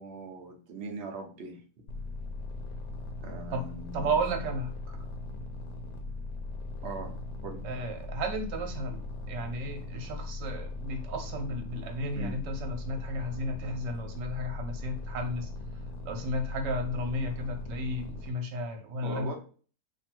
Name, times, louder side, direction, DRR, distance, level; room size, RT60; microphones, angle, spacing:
voice 1, 0.0-1.6 3.2-4.2 6.8-7.1 7.4-7.6 12.1-12.4 19.0-19.3, right 3 dB, 50° right, 1 dB, 0.9 m, -40 dB
sound 1, 1.9-18.3, left 2 dB, 65° left, 1.1 m, -39 dB
voice 2, 3.9-4.7 7.6-15.5 16.0-19.3, right 1 dB, 80° right, 4 dB, 1.4 m, -33 dB
2.9 x 2.6 x 4.3 m, 0.40 s
omnidirectional pair, 1.9 m